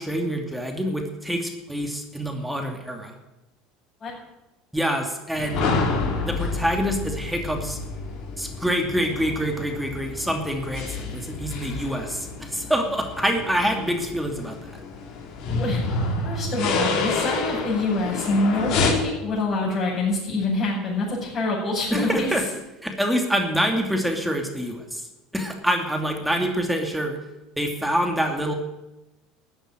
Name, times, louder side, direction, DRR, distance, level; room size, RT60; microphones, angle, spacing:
voice 1, 0.0-3.1 4.7-5.6 6.3-7.8 8.4-14.7 21.9-22.4 22.8-25.1 25.3-27.2 27.6-28.5, equal, 5° right, 3 dB, 2.7 m, -26 dB
sound 1, 5.3-18.9, left 3 dB, 55° left, 4.0 m, -29 dB
voice 2, 16.2-22.3, left 2 dB, 35° left, -8 dB, 7.0 m, -25 dB
14.5 x 9.0 x 9.3 m, 0.99 s
hypercardioid pair, 85°, 0 cm